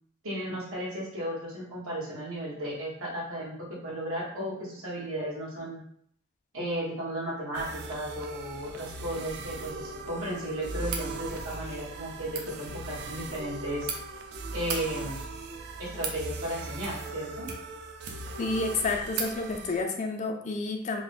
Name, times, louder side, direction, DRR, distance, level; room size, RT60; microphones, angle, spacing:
voice 1, 0.2-5.8 6.5-13.9 14.5-15.2 15.8-17.5, right 1 dB, 70° right, -5 dB, 1.3 m, -35 dB
sound 1, 7.5-19.8, right 2 dB, 50° right, 0.4 m, -39 dB
sound 2, 10.8-11.1 12.2-12.5 13.4-14.0 14.5-14.8 15.6-16.2 16.8-17.2 17.4-18.4 18.7-18.8 19.1-19.3, right 5 dB, 85° right, 0.6 m, -36 dB
voice 2, 18.4-21.0, left 3 dB, 35° left, 3 dB, 0.4 m, -30 dB
3.7 x 2.1 x 3.2 m, 0.68 s
head